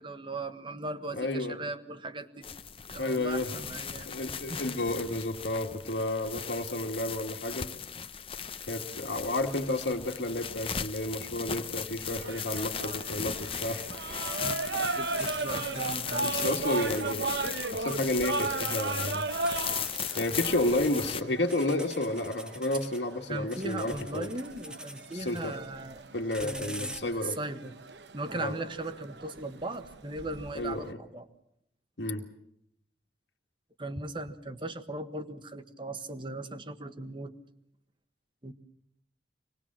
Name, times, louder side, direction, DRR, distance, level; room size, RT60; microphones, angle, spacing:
voice 1, 0.0-2.4 2.9-4.1 4.5-4.8 14.4-14.6 15.0-16.6 22.7-22.8 23.3-26.0 26.4-27.7 28.1-31.3 33.8-37.3 38.4-38.5, right 2 dB, 30° right, 9 dB, 1.4 m, -38 dB
voice 2, 1.1-1.6 3.0-3.5 4.1-7.7 8.7-14.2 16.2-17.3 17.7-19.3 20.2-24.3 25.1-25.6 26.1-27.4 28.3-28.5 30.5-31.0 32.0-32.2, left 1 dB, 90° left, 2 dB, 1.9 m, -31 dB
sound 1, 2.4-21.2, left 7 dB, 30° left, 0.8 m, -37 dB
sound 2, 12.0-30.9, right 3 dB, 80° right, 1.0 m, -37 dB
sound 3, 14.5-14.7 15.2-17.4 17.9-18.8 19.5-21.1 21.5-23.0 23.5-25.7 26.2-27.0, equal, 5° right, 1.5 m, -45 dB
25.5 x 20.0 x 7.5 m, 0.75 s
head